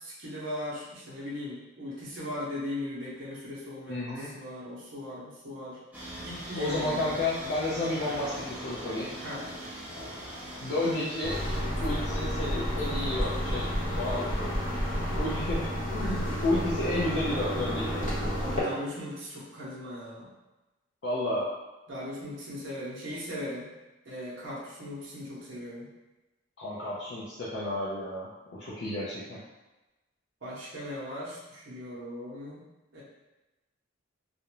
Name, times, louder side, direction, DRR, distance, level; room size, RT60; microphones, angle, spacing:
voice 1, 0.0-5.8 6.2-7.2 9.2-9.4 16.0-16.4 18.3-20.3 21.9-23.7 24.0-25.9 30.4-32.6 32.9-33.0, left 1 dB, 65° right, -6 dB, 0.6 m, -38 dB
voice 2, 3.9-4.3 6.6-9.1 10.6-11.4 11.8-14.6 15.2-16.0 16.4-18.0 21.0-21.5 26.6-29.4, left 2 dB, 65° left, -9 dB, 0.5 m, -31 dB
sound 1, 5.9-15.2, right 1 dB, 5° right, 0.5 m, -42 dB
sound 2, 11.2-18.6, equal, 40° left, 0.8 m, -30 dB
2.4 x 2.1 x 2.9 m, 1.1 s
head